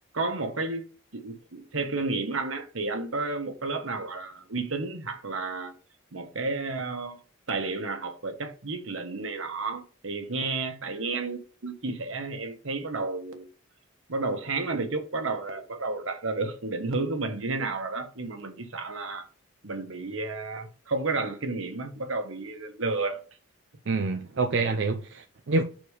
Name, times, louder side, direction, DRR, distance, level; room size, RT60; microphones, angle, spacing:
voice 1, 0.1-0.9 1.1-5.7 6.1-7.2 7.5-13.5 14.1-19.3 19.6-23.2, right 3 dB, 80° right, 1.3 m, -31 dB
voice 2, 23.9-25.6, right 3 dB, 60° right, 0.6 m, -27 dB
6.4 x 4.3 x 5.0 m
head